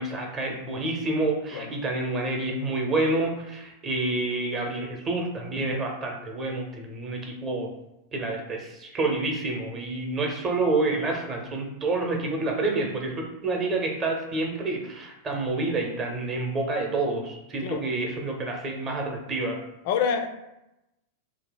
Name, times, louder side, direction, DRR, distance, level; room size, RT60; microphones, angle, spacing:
voice 1, 0.0-7.7 8.1-19.6, right 2 dB, 25° right, 1 dB, 0.7 m, -28 dB
voice 2, 19.8-20.3, left 7 dB, 50° left, 6 dB, 0.4 m, -26 dB
2.7 x 2.2 x 3.9 m, 0.90 s
figure-of-eight pair, 90°, 0 cm